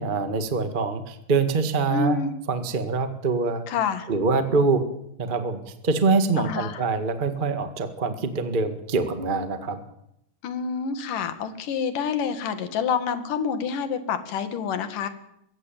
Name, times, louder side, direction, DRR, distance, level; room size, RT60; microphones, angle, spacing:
voice 1, 0.0-2.2 2.5-3.6 4.1-4.8 5.2-9.8, right 4 dB, 65° right, 9 dB, 0.5 m, -24 dB
voice 2, 1.9-2.3 3.7-4.1 6.4-6.8 10.4-15.1, left 6 dB, 60° left, 10 dB, 3.3 m, -27 dB
22.5 x 16.5 x 9.1 m, 0.78 s
omnidirectional pair, 4.4 m